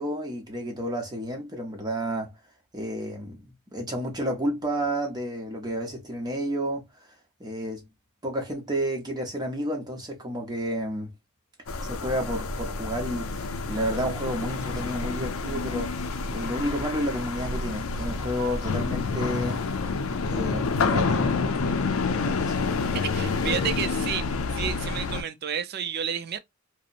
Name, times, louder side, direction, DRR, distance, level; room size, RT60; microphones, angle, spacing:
voice 1, 0.0-2.3 2.7-3.4 3.7-6.9 7.4-7.9 8.2-11.1 11.8-19.6 20.3-21.4 22.2-22.8, equal, 20° right, 0.7 m, -31 dB
sound 1, 11.7-25.2, left 4 dB, 80° left, 0.5 m, -28 dB
voice 2, 22.9-24.3 24.5-26.4, right 8 dB, 50° right, 0.4 m, -31 dB
2.8 x 2.0 x 2.4 m
head